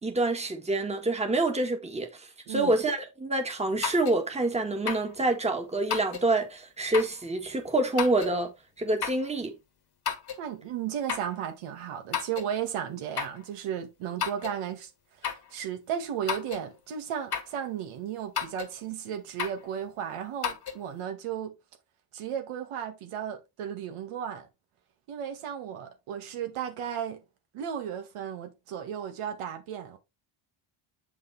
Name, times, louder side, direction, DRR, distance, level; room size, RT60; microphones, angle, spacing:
voice 1, 0.0-8.5 8.8-9.5, right 2 dB, 15° right, 1.6 m, -27 dB
sound 1, 3.8-4.2 4.9-5.1 5.9-6.3 6.9-7.2 8.0-8.4 9.0-9.3 10.1-10.4 11.1-11.3 12.1-12.5 13.2-13.4 14.2-14.6 15.2-15.5 16.3-16.7 17.3-17.6 18.4-18.7 19.4-19.6 20.4-20.8, left 8 dB, 50° left, 1.5 m, -32 dB
voice 2, 10.4-14.9 15.2-21.5 22.1-24.5 25.1-27.2 27.5-30.0, right 9 dB, 90° right, 2.0 m, -35 dB
7.8 x 5.4 x 3.4 m
cardioid pair, 125°, 50 cm